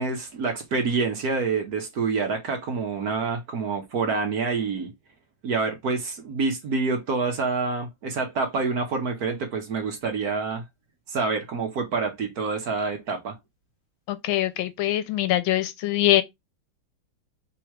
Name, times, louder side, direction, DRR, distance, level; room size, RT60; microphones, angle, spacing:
voice 1, 0.0-4.9 5.4-10.6 11.1-13.3, right 4 dB, 55° right, 1.2 m, -27 dB
voice 2, 14.1-16.2, left 14 dB, 80° left, 1.4 m, -23 dB
3.5 x 3.0 x 4.5 m
omnidirectional pair, 2.2 m